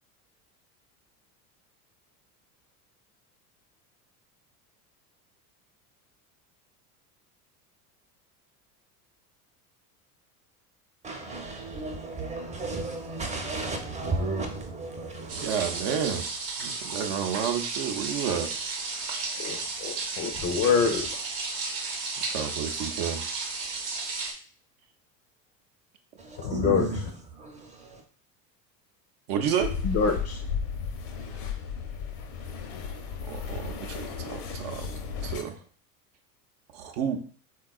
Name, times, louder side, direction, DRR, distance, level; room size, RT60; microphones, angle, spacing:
voice 1, 11.0-15.9 26.2-28.0, right 3 dB, 15° right, 0.6 m, -34 dB
sound 1, 15.3-24.3, right 4 dB, 90° right, 0.9 m, -33 dB
voice 2, 15.4-16.3 16.6-18.5 22.3-23.2 29.3-29.7 33.2-34.9 35.2-35.6 36.7-37.3, right 8 dB, 60° right, 0.6 m, -30 dB
voice 3, 19.4-21.1 26.4-26.9 29.8-30.4, left 5 dB, 35° left, 0.5 m, -25 dB
sound 2, 29.6-35.4, left 6 dB, 70° left, 0.7 m, -34 dB
3.5 x 2.3 x 2.3 m
hypercardioid pair, 95°, 46 cm